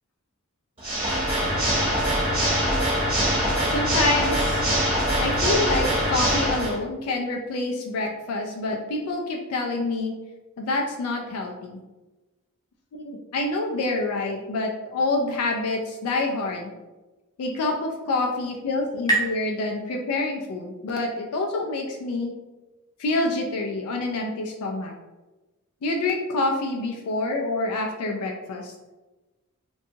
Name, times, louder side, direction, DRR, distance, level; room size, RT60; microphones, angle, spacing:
Water / Mechanisms, 0.8-6.8, equal, 25° right, 1.0 m, -23 dB
voice 1, 3.7-4.7 5.2-10.1 10.6-11.8 12.9-16.7 17.4-22.3 23.0-24.9 25.8-28.7, left 2 dB, 80° left, 1 dB, 0.3 m, -27 dB
sound 1, 17.6-21.0, right 2 dB, 15° left, 0.6 m, -32 dB
2.7 x 2.2 x 2.6 m, 1.1 s
head